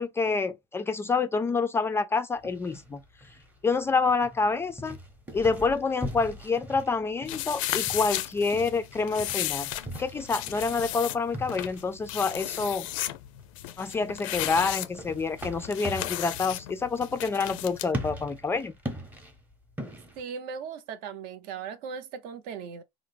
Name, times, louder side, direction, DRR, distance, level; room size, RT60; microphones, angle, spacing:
voice 1, 0.0-3.0 3.6-5.0 5.3-9.7 10.0-12.9 13.8-18.7, left 4 dB, 15° left, 0.3 m, -27 dB
sound 1, 2.4-20.2, equal, 10° right, 0.7 m, -42 dB
sound 2, 7.3-17.9, left 14 dB, 80° left, 0.4 m, -35 dB
voice 2, 20.2-22.8, right 6 dB, 60° right, 0.6 m, -38 dB
3.4 x 2.0 x 3.2 m
supercardioid pair, 120°, 17 cm